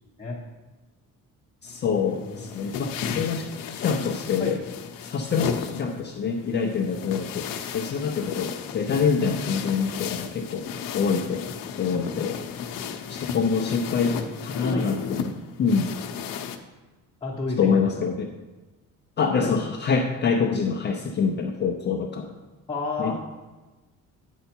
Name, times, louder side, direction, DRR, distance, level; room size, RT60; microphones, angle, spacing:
voice 1, 1.6-4.6 5.0-10.7 10.9-11.5 11.8-12.4 13.1-14.1 14.4-15.9 17.6-18.3 19.2-22.3 23.0-23.1, left 5 dB, 35° left, 1 dB, 0.6 m, -26 dB
sound 1, 1.7-16.6, left 7 dB, 85° left, 0.8 m, -34 dB
voice 2, 17.2-18.1 19.4-19.5 22.7-23.1, left 3 dB, 15° left, -5 dB, 1.0 m, -31 dB
9.1 x 6.7 x 4.4 m, 1.2 s
cardioid pair, 180°, 33 cm